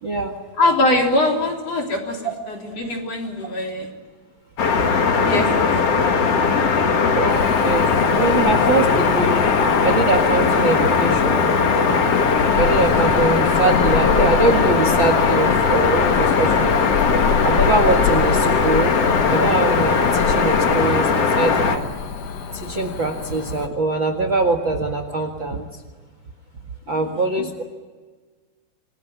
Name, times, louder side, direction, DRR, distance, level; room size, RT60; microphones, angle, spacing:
voice 1, 0.0-0.3 7.1-9.3 9.8-11.6 12.5-16.7 17.4-19.0 19.3-21.8 22.5-25.7 26.9-27.6, right 3 dB, 85° right, 7 dB, 1.0 m, -22 dB
voice 2, 0.6-2.2 2.8-3.9 4.9-6.1, left 2 dB, 35° left, 1 dB, 4.2 m, -22 dB
sound 1, 4.6-21.8, left 5 dB, 55° left, 1.7 m, -19 dB
Cricket / Motor vehicle (road), 7.3-23.7, left 6 dB, 70° left, 1.5 m, -26 dB
28.0 x 21.0 x 9.1 m, 1.4 s
omnidirectional pair, 5.6 m